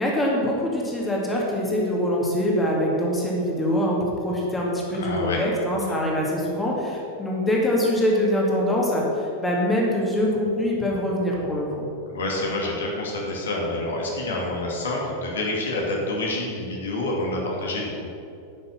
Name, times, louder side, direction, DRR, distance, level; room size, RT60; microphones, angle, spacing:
voice 1, 0.0-11.9, left 1 dB, 10° left, -3 dB, 2.4 m, -24 dB
voice 2, 5.0-5.4 12.1-18.1, left 2 dB, 65° left, -2 dB, 2.3 m, -27 dB
10.0 x 6.7 x 7.2 m, 2.7 s
figure-of-eight pair, 90°, 0 cm